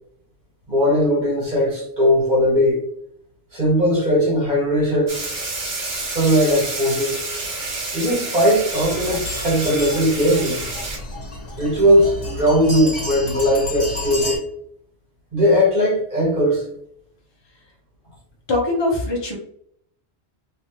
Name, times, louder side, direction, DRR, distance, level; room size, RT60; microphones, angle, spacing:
voice 1, 0.7-2.8 3.5-5.2 6.1-7.2 7.9-10.6 11.6-14.4 15.3-16.7, equal, 40° right, -4 dB, 1.6 m, -18 dB
sound 1, 5.1-11.0, right 2 dB, 65° right, 1.4 m, -29 dB
sound 2, 8.7-14.4, left 2 dB, 55° left, 1.3 m, -31 dB
voice 2, 18.5-19.3, left 2 dB, 25° left, -2 dB, 0.8 m, -21 dB
3.2 x 3.0 x 2.8 m, 0.68 s
omnidirectional pair, 1.2 m